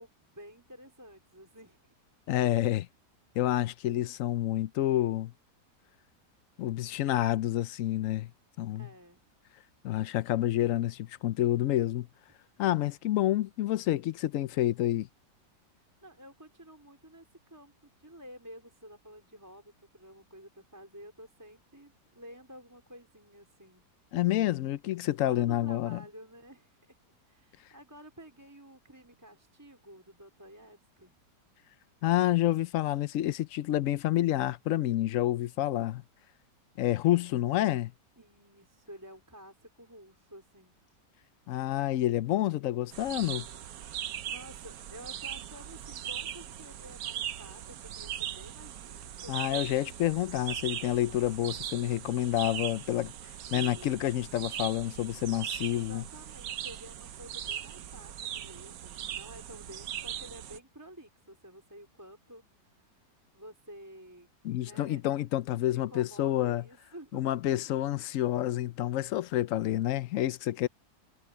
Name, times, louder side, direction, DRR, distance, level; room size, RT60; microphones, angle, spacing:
voice 1, 0.0-1.8 8.7-9.2 15.7-23.9 25.2-27.0 27.2-31.2 38.2-40.8 44.0-50.1 53.5-54.1 55.7-64.3 64.6-65.0 65.7-67.3, equal, 10° right, 4.3 m, -51 dB
voice 2, 2.3-2.9 3.4-5.3 6.6-8.3 8.6-8.9 9.8-12.1 12.6-15.1 24.1-26.0 32.0-36.0 36.8-37.9 41.5-43.4 49.3-53.1 53.5-56.0 64.4-66.6 67.1-70.7, left 13 dB, 70° left, 0.8 m, -28 dB
sound 1, 42.9-60.6, right 10 dB, 65° right, 1.2 m, -39 dB
omnidirectional pair, 1.8 m